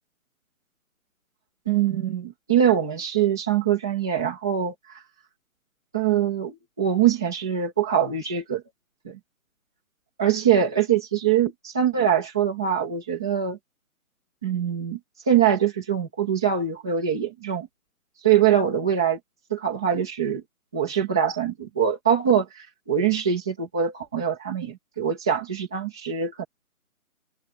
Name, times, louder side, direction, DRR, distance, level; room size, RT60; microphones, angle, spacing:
voice 1, 1.6-4.7 5.9-8.6 9.0-9.2 10.2-13.6 14.4-15.0 15.3-17.7 18.2-19.2 19.5-20.4 20.7-26.4, right 9 dB, 5° right, 1.6 m, -23 dB
open air
hypercardioid pair, 180°, 43 cm